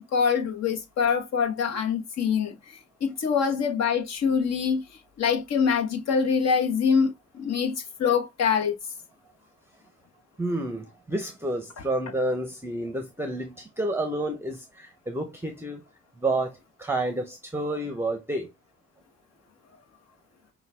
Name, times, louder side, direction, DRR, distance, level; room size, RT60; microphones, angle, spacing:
voice 1, 0.1-2.5 3.0-4.8 5.2-7.1 7.4-8.7, left 6 dB, 60° left, 1.1 m, -24 dB
voice 2, 10.4-15.8 16.2-18.5, right 1 dB, 10° right, 0.7 m, -30 dB
5.5 x 2.4 x 3.4 m
cardioid pair, 90°, 30 cm